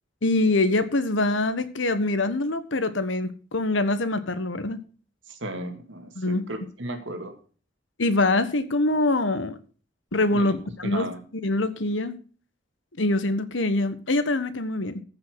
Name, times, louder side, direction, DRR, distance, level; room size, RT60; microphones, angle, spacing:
voice 1, 0.2-4.8 6.2-6.4 8.0-9.6 10.1-11.1 11.4-12.2 13.0-15.0, left 2 dB, 75° left, 1.3 m, -24 dB
voice 2, 5.3-7.3 10.3-10.6 10.8-11.2, right 1 dB, 70° right, 2.2 m, -35 dB
14.5 x 5.7 x 6.3 m
head